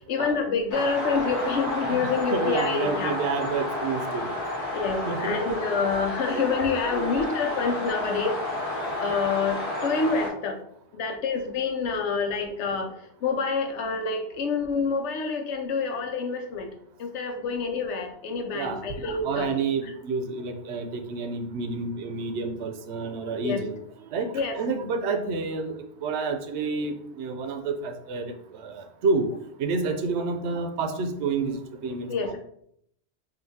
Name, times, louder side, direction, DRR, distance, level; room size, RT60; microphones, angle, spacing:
voice 1, 0.1-3.1 4.7-8.4 9.0-10.6 10.9-13.0 13.2-16.7 17.0-19.5 23.4-23.6 24.3-24.6 32.1-32.4, left 4 dB, 90° left, 4 dB, 1.0 m, -27 dB
sound 1, 0.7-10.3, left 1 dB, 30° left, 1.4 m, -31 dB
voice 2, 1.9-4.3 5.1-5.6 6.3-7.1 18.5-18.8 19.2-23.8 24.1-25.8 26.0-29.3 29.6-32.4, right 4 dB, 75° right, 6 dB, 0.9 m, -29 dB
5.1 x 2.6 x 2.7 m, 0.70 s
omnidirectional pair, 1.2 m